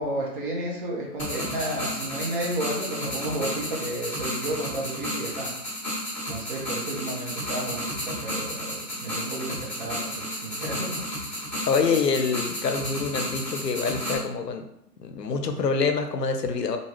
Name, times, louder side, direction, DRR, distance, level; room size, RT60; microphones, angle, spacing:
voice 1, 0.0-5.5 6.3-11.0, right 1 dB, 35° right, -2 dB, 0.8 m, -32 dB
sound 1, 1.2-14.2, equal, 5° left, 1.0 m, -32 dB
voice 2, 11.7-14.6 15.0-16.8, left 5 dB, 85° left, 6 dB, 0.6 m, -26 dB
2.6 x 2.3 x 3.0 m, 0.77 s
figure-of-eight pair, 125°, 47 cm